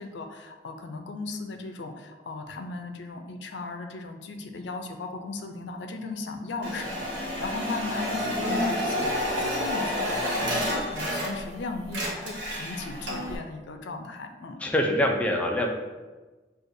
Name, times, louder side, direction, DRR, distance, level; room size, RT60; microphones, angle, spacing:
voice 1, 0.0-14.6, left 3 dB, 90° left, 5 dB, 0.5 m, -37 dB
sound 1, 6.6-11.6 11.8-13.4, equal, 90° right, 0.9 m, -29 dB
voice 2, 14.6-15.7, left 1 dB, 10° left, 0 dB, 0.4 m, -24 dB
6.3 x 2.4 x 2.6 m, 1.2 s
head